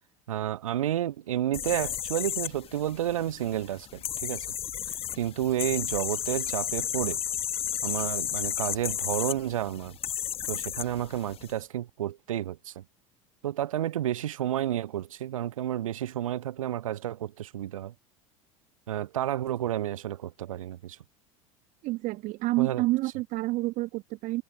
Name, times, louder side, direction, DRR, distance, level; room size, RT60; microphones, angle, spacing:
voice 1, 0.3-4.5 4.9-7.2 7.8-10.0 10.5-12.8 13.4-17.9 18.9-21.0 22.6-22.8, right 12 dB, 75° right, 0.5 m, -31 dB
sound 1, 1.5-11.5, left 10 dB, 35° left, 1.3 m, -33 dB
voice 2, 21.8-24.4, right 19 dB, 45° right, 1.2 m, -28 dB
figure-of-eight pair, 70°, 17 cm